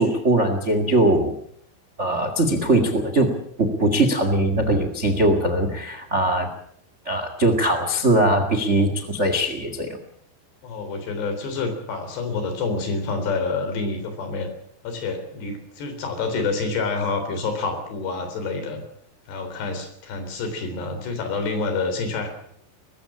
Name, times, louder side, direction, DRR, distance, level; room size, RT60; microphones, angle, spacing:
voice 1, 0.0-1.3 2.0-6.5 7.0-10.0, right 1 dB, 40° right, 8 dB, 1.0 m, -21 dB
voice 2, 10.6-14.5 14.8-18.8 19.3-22.3, left 4 dB, 75° left, 7 dB, 5.8 m, -27 dB
20.5 x 15.5 x 8.6 m, 0.66 s
omnidirectional pair, 4.9 m